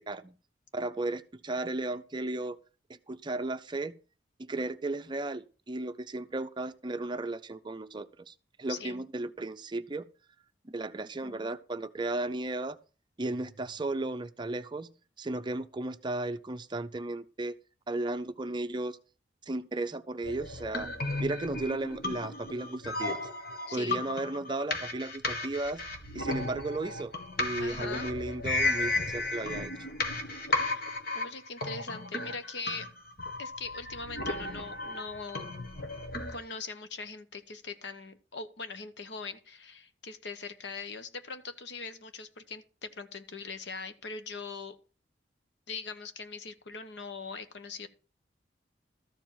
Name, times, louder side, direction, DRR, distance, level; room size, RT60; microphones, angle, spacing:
voice 1, 0.7-2.6 2.9-4.0 4.4-10.1 10.6-12.8 13.2-14.9 15.2-17.5 17.9-19.0 19.5-20.9 21.2-23.2 23.7-25.8 26.1-27.1 27.4-29.7, right 2 dB, 25° right, 0.5 m, -35 dB
voice 2, 8.7-9.0 11.2-11.6 23.7-24.0 27.6-28.1 30.5-32.9 33.4-35.7 36.3-44.8 45.7-47.9, left 4 dB, 70° left, 1.1 m, -41 dB
sound 1, 20.2-36.4, left 2 dB, 55° left, 1.7 m, -34 dB
13.5 x 4.8 x 7.3 m
head